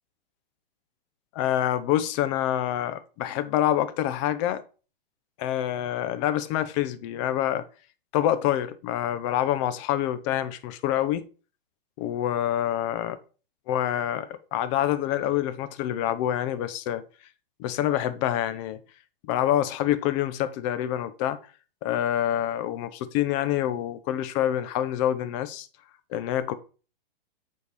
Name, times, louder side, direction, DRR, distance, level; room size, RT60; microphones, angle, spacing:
voice 1, 1.3-4.6 5.4-7.6 8.1-11.3 12.0-13.2 13.7-17.0 17.6-18.8 19.3-21.4 21.8-25.7 26.1-26.5, left 12 dB, 35° left, 0.9 m, -26 dB
8.3 x 4.5 x 4.9 m
hypercardioid pair, 145°, 29 cm